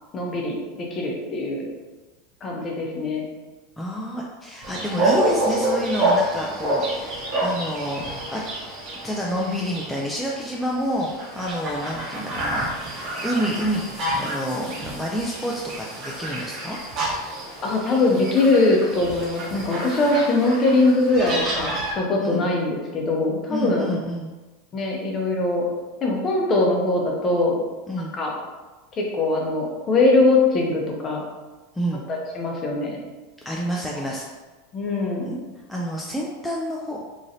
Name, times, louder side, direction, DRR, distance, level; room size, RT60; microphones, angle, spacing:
voice 1, 0.1-1.6 2.4-3.2 17.6-23.9 24.7-25.6 26.0-27.5 28.1-28.3 28.9-31.2 32.1-33.0 34.7-35.5, left 2 dB, 30° left, 0 dB, 0.7 m, -22 dB
voice 2, 3.8-8.4 9.0-13.8 14.2-16.8 22.2-22.5 23.5-24.3 27.9-28.1 31.7-32.0 33.5-34.3 35.2-35.3 35.7-37.0, equal, 5° left, -3 dB, 0.3 m, -28 dB
sound 1, 4.6-21.9, right 1 dB, 40° right, 1.0 m, -28 dB
3.0 x 2.6 x 2.6 m, 1.2 s
supercardioid pair, 125°, 0 cm